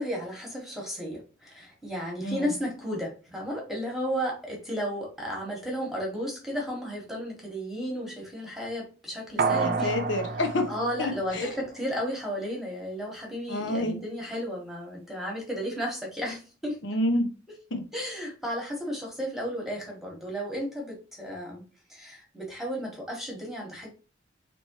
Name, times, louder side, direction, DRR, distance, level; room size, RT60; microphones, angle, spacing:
voice 1, 0.0-10.0 10.7-16.8 17.5-17.6 17.9-21.6 21.9-23.9, equal, ahead, -2 dB, 1.3 m, -33 dB
sound 1, 9.4-11.9 12.3-12.4, right 4 dB, 50° right, 0.4 m, -30 dB
voice 2, 9.5-10.7 11.0-11.5 13.5-14.0 16.8-17.3 17.7-17.8, left 1 dB, 65° left, 5 dB, 0.9 m, -28 dB
4.2 x 3.1 x 3.0 m, 0.34 s
head